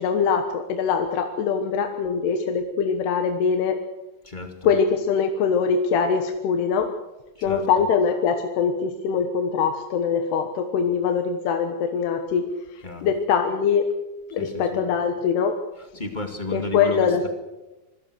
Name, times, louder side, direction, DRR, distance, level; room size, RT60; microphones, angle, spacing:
voice 1, 0.0-3.8 4.6-6.9 7.4-13.8 14.3-15.5 16.5-17.3, left 6 dB, 75° left, 6 dB, 3.3 m, -23 dB
voice 2, 4.2-4.7 7.4-7.6 12.8-13.1 14.4-14.5 15.9-17.3, left 2 dB, 20° left, 5 dB, 1.2 m, -32 dB
26.0 x 18.5 x 6.4 m, 1.0 s
omnidirectional pair, 4.9 m